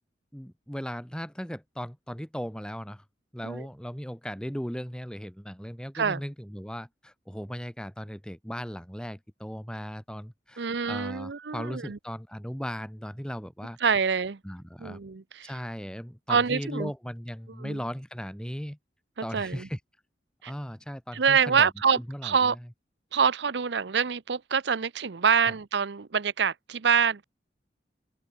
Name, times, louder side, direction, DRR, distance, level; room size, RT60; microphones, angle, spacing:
voice 1, 0.3-3.0 3.3-13.8 14.4-15.0 15.4-18.8 19.2-19.8 20.5-22.6, equal, 5° left, 2.2 m, -37 dB
voice 2, 10.6-12.0 13.8-14.4 14.8-15.5 16.3-16.9 17.6-17.8 19.2-19.7 20.4-20.5 21.1-22.6 23.1-27.2, right 6 dB, 80° right, 0.7 m, -26 dB
head